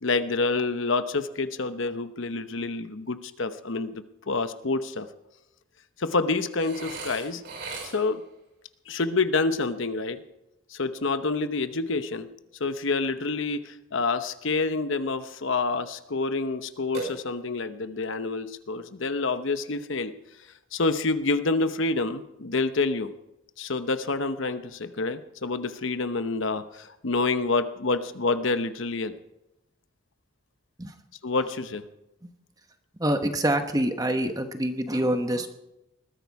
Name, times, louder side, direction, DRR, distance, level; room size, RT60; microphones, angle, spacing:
voice 1, 0.0-5.1 6.0-7.4 7.9-8.2 8.9-10.2 10.7-12.3 12.6-20.1 20.7-23.1 23.6-29.1 31.2-31.8, left 3 dB, 70° left, 10 dB, 0.9 m, -27 dB
Burping eructation, 6.6-8.3 16.9-17.7, right 3 dB, 55° right, 5.0 m, -38 dB
voice 2, 33.0-35.5, right 1 dB, 15° right, 7 dB, 1.1 m, -26 dB
20.5 x 13.5 x 4.8 m, 0.90 s
head